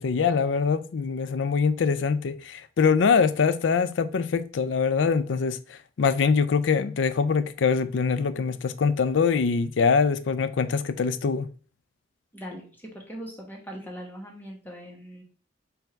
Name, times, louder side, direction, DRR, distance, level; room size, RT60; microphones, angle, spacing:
voice 1, 0.0-11.5, left 5 dB, 75° left, 0.4 m, -23 dB
voice 2, 12.3-15.2, equal, 10° left, 1.3 m, -40 dB
4.5 x 2.7 x 4.4 m
head